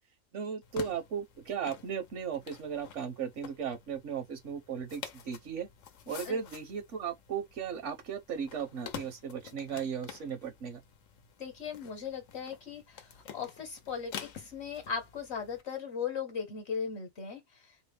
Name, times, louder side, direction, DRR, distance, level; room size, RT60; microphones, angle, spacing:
voice 1, 0.3-5.7 6.1-10.8, right 7 dB, 75° right, 1.1 m, -36 dB
sound 1, 0.6-15.6, left 8 dB, 85° left, 1.1 m, -49 dB
voice 2, 11.4-13.1 13.3-17.4, left 6 dB, 60° left, 1.2 m, -38 dB
4.0 x 2.0 x 3.3 m
omnidirectional pair, 1.3 m